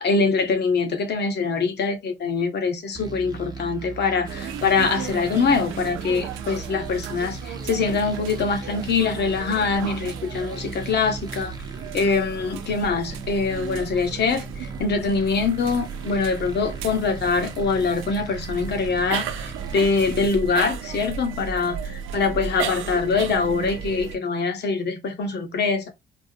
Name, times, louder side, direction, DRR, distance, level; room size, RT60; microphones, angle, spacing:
voice 1, 0.0-11.5 11.9-25.9, left 4 dB, 55° left, 1.2 m, -24 dB
sound 1, 2.9-20.3, right 4 dB, 20° right, 0.9 m, -38 dB
sound 2, 4.3-24.2, right 8 dB, 85° right, 0.5 m, -35 dB
4.4 x 2.0 x 2.7 m
cardioid pair, 90°, 20 cm